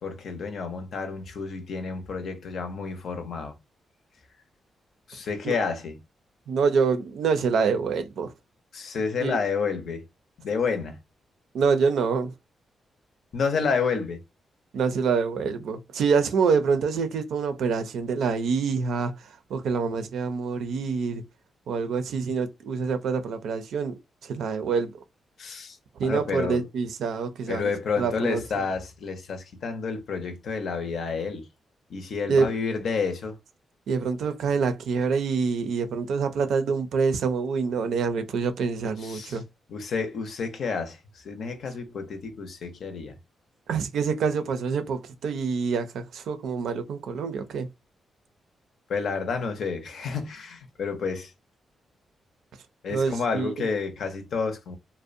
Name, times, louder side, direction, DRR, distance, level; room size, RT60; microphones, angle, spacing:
voice 1, 0.0-3.6 5.1-6.0 8.7-10.1 10.4-11.0 13.3-14.2 25.4-25.8 26.0-26.6 27.5-31.5 31.9-33.4 39.0-39.4 39.7-43.2 48.9-51.3 52.8-54.8, left 5 dB, 70° left, 0.6 m, -30 dB
voice 2, 6.5-8.3 9.0-9.4 11.5-12.3 14.7-21.2 21.7-23.9 24.2-25.0 26.0-28.4 32.3-32.5 33.9-39.4 43.7-47.7 52.9-53.7, right 5 dB, 80° right, 0.4 m, -26 dB
2.6 x 2.0 x 2.5 m
cardioid pair, 85°, 0 cm